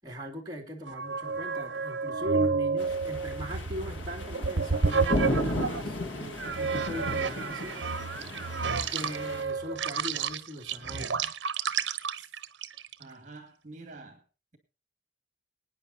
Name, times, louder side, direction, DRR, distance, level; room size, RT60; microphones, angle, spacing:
voice 1, 0.0-7.8 8.9-11.2 12.2-12.3, left 1 dB, 20° right, 2.6 m, -40 dB
sound 1, 0.9-5.8 6.4-13.0, right 4 dB, 70° right, 0.9 m, -30 dB
sound 2, 2.8-9.4, left 1 dB, 90° left, 1.9 m, -35 dB
voice 2, 13.0-14.2, right 3 dB, 40° right, 2.4 m, -47 dB
24.0 x 9.9 x 2.8 m
head